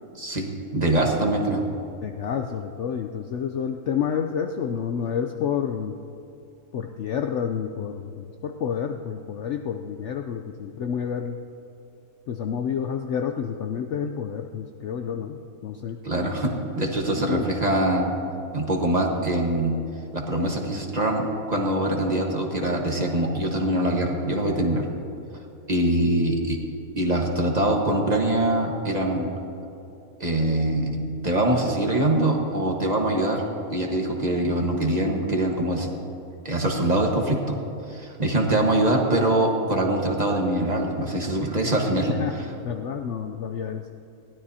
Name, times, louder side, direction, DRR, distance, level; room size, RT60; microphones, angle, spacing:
voice 1, 0.2-1.6 16.0-18.1 18.5-19.8 20.1-24.9 25.7-26.6 27.0-29.3 30.2-31.0 31.2-33.4 33.7-35.9 36.4-37.6 37.9-42.5, right 1 dB, 30° right, 0 dB, 1.3 m, -23 dB
voice 2, 2.0-6.0 6.7-11.4 12.3-16.0 17.1-17.5 42.2-42.3 42.6-43.9, left 7 dB, 65° left, 5 dB, 0.7 m, -29 dB
21.0 x 16.0 x 2.8 m, 2.8 s
omnidirectional pair, 1.6 m